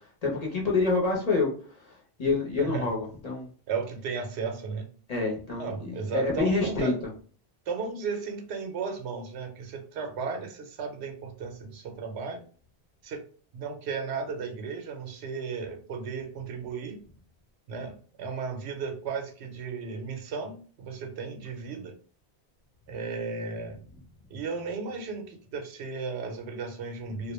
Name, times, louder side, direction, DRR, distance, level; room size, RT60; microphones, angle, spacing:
voice 1, 0.2-1.5 1.8-3.5 5.1-6.9, left 3 dB, 40° left, -3 dB, 0.8 m, -27 dB
voice 2, 3.7-4.9 5.6-7.0 7.7-12.5 13.0-13.3 13.5-17.0 17.7-22.0 22.9-23.8 24.3-27.3, right 5 dB, 80° right, 4 dB, 0.8 m, -35 dB
2.2 x 2.1 x 3.0 m, 0.42 s
omnidirectional pair, 1.1 m